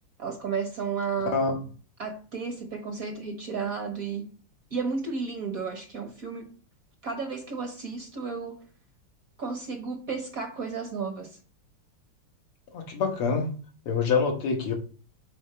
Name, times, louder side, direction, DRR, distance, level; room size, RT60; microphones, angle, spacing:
voice 1, 0.2-1.5 2.0-4.4 4.7-6.6 7.0-8.6 9.4-11.4, right 5 dB, 55° right, 1.0 m, -33 dB
voice 2, 12.7-13.5 13.9-14.7, left 5 dB, 85° left, 2.2 m, -25 dB
5.7 x 4.2 x 5.5 m
omnidirectional pair, 2.4 m